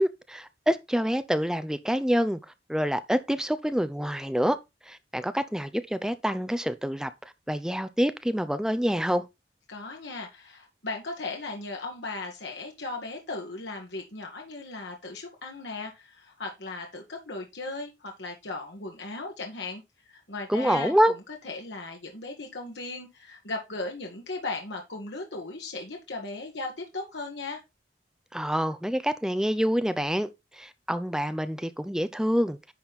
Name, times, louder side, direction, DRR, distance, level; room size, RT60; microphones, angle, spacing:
voice 1, 0.0-2.4 2.7-4.6 4.9-7.1 7.5-9.2 20.5-21.1 28.3-32.6, equal, 5° right, 0.6 m, -26 dB
voice 2, 9.7-19.8 20.1-20.9 21.4-27.6, left 3 dB, 85° left, 1.8 m, -37 dB
10.5 x 4.2 x 4.2 m
head